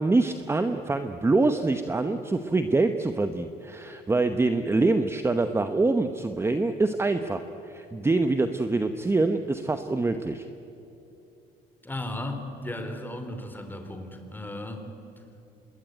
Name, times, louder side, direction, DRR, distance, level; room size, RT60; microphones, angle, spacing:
voice 1, 0.0-10.4, right 3 dB, 15° right, 8 dB, 1.0 m, -25 dB
voice 2, 11.8-14.9, left 1 dB, 10° left, 5 dB, 3.5 m, -35 dB
25.5 x 20.5 x 9.2 m, 2.8 s
cardioid pair, 110°, 17 cm